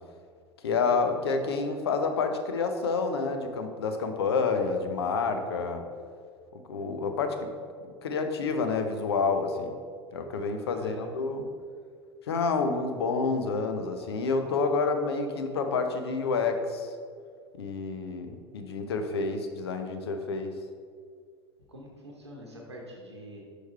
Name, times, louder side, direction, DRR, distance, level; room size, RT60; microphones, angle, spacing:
voice 1, 0.6-5.8 6.5-7.5 8.0-9.7 10.1-11.5 12.3-16.9 17.5-20.5, left 4 dB, 70° left, 6 dB, 0.7 m, -29 dB
voice 2, 10.7-11.1 21.7-23.4, right 1 dB, 85° right, -1 dB, 0.9 m, -45 dB
6.3 x 4.9 x 4.4 m, 2.1 s
figure-of-eight pair, 75°, 14 cm